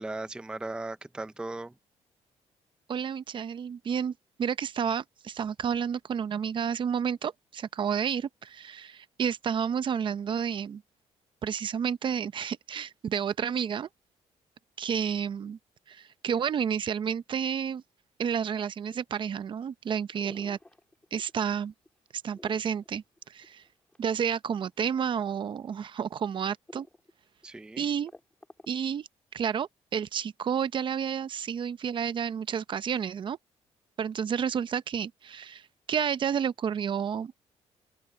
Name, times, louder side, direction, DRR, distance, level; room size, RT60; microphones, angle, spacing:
voice 1, 0.0-1.7 27.4-27.9, right 2 dB, 5° right, 0.5 m, -37 dB
voice 2, 2.9-4.1 4.4-10.8 11.4-13.9 14.8-15.6 15.9-17.8 18.2-20.6 21.1-21.7 22.2-23.6 24.0-26.9 27.8-28.1 28.7-33.4 34.0-37.3, right 7 dB, 45° right, 0.7 m, -30 dB
sound 1, 20.1-21.5 21.9-24.1 24.9-25.4 25.9-26.0 26.7-27.1 27.4-27.5 27.8-28.9, left 2 dB, 10° left, 3.1 m, -52 dB
open air
cardioid pair, 135°, 12 cm